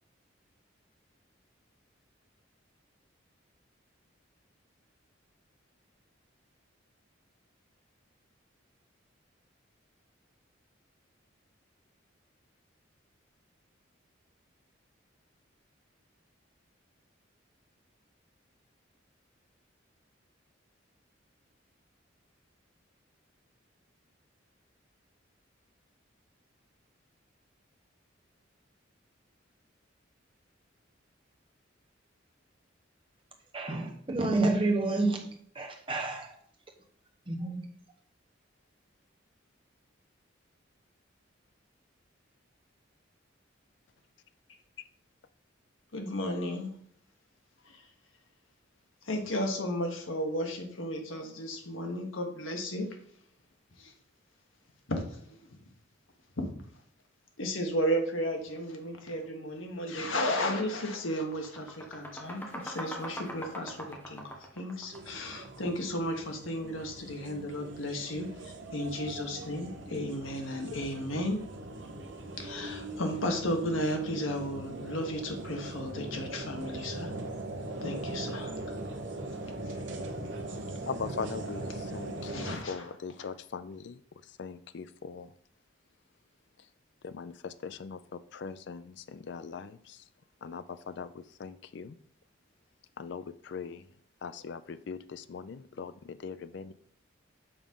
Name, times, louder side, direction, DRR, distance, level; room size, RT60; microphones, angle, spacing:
voice 1, 33.5-36.3 37.3-37.7, right 2 dB, 25° right, 3 dB, 0.9 m, -29 dB
voice 2, 45.9-46.7 47.6-47.8 49.0-52.9 53.8-53.9 54.9-55.6 56.4-56.5 57.4-71.4 72.4-77.1 77.8-78.6 79.6-79.8 82.2-82.9, equal, 85° left, 4 dB, 1.3 m, -34 dB
sound 1, 60.2-60.4 60.8-65.7, equal, 10° left, 1.0 m, -42 dB
sound 2, 64.9-82.6, right 2 dB, 70° right, 0.9 m, -40 dB
voice 3, 80.9-85.3 87.0-90.0 90.4-92.0 93.0-93.9 94.2-96.7, left 5 dB, 60° left, 13 dB, 0.4 m, -41 dB
7.0 x 3.7 x 5.4 m, 0.64 s
head